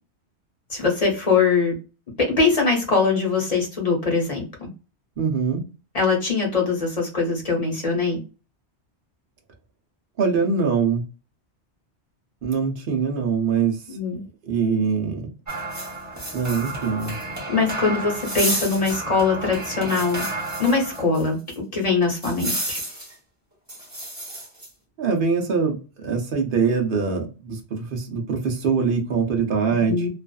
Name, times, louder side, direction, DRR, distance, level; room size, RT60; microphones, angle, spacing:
voice 1, 0.7-1.7 2.4-4.7 5.9-8.2 13.9-14.2 17.5-20.2 20.6-21.4 21.7-22.8 29.9-30.1, left 4 dB, 35° left, -1 dB, 0.9 m, -22 dB
voice 2, 5.2-5.6 10.2-11.0 12.4-13.8 14.5-15.3 16.3-17.2 25.0-30.1, right 5 dB, 55° right, 2 dB, 0.8 m, -23 dB
sound 1, 15.5-21.2 21.5-21.6 22.2-23.1 23.7-24.7, right 1 dB, 15° right, 0.8 m, -31 dB
2.5 x 2.4 x 2.2 m, 0.34 s
omnidirectional pair, 1.1 m